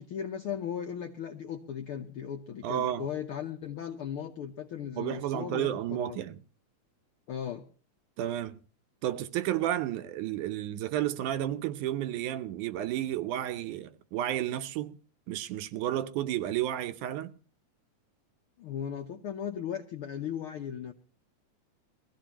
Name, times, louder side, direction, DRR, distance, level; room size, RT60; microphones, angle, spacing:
voice 1, 0.0-6.2 7.3-7.6 18.6-20.9, left 8 dB, 75° left, 1.2 m, -37 dB
voice 2, 2.6-3.0 5.0-6.4 8.2-8.6 9.0-15.0 15.3-17.3, right 12 dB, 80° right, 2.3 m, -32 dB
22.0 x 15.0 x 2.9 m
omnidirectional pair, 3.5 m